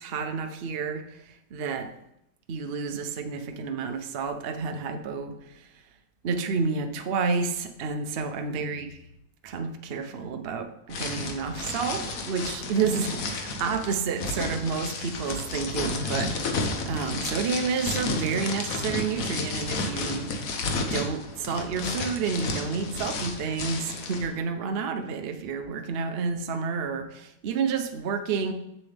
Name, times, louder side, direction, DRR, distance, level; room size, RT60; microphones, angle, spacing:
voice 1, 0.0-1.9 2.5-5.7 6.2-8.9 9.4-16.3 16.8-20.5 20.8-28.5, right 5 dB, 55° right, 6 dB, 0.7 m, -30 dB
sound 1, 10.9-24.3, left 3 dB, 55° left, 1.2 m, -32 dB
7.6 x 7.0 x 3.4 m, 0.81 s
omnidirectional pair, 1.9 m